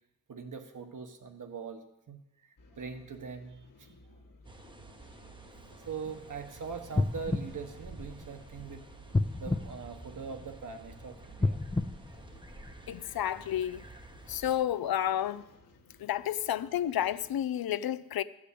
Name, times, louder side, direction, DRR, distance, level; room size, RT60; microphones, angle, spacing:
voice 1, 0.3-2.2 2.7-4.0 5.7-8.8 9.4-11.6, right 5 dB, 60° right, 1.3 m, -42 dB
sound 1, 2.6-17.5, left 3 dB, 65° left, 1.4 m, -59 dB
sound 2, 4.4-14.5, right 2 dB, 15° right, 0.8 m, -51 dB
sound 3, 6.9-8.6 9.1-10.7 11.3-13.0 13.6-13.7, left 2 dB, 15° left, 0.5 m, -32 dB
voice 2, 12.9-13.8 14.3-15.4 16.0-18.2, left 11 dB, 85° left, 0.5 m, -31 dB
13.5 x 5.1 x 8.4 m
wide cardioid pair, 105°, 35 cm